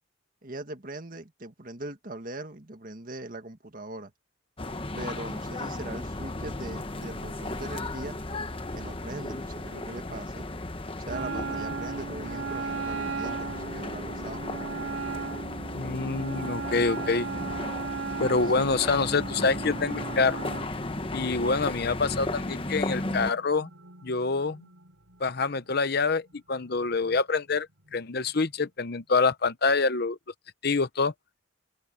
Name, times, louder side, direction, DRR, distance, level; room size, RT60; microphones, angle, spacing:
voice 1, 0.4-4.1 4.9-8.2 8.7-10.5 11.0-14.5 18.4-18.5, right 2 dB, 40° right, 1.8 m, -40 dB
sound 1, 4.6-23.3, left 2 dB, 25° left, 1.1 m, -35 dB
Wind instrument woodwind instrument, 11.1-20.7, right 5 dB, 65° right, 0.5 m, -36 dB
voice 2, 15.7-17.3 18.2-20.4 21.1-23.7 24.0-24.7 25.2-27.7 27.9-30.2 30.6-31.1, left 4 dB, 50° left, 0.8 m, -26 dB
sound 2, 18.0-29.5, right 1 dB, 80° right, 6.3 m, -57 dB
open air
head